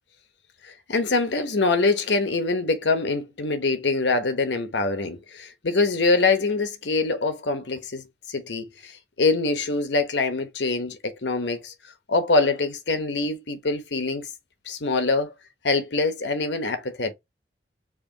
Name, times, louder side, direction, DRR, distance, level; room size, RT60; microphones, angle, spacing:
voice 1, 0.6-11.7 12.1-14.3 14.7-15.3 15.6-17.1, left 3 dB, 90° left, 1.0 m, -24 dB
4.8 x 2.7 x 2.8 m
head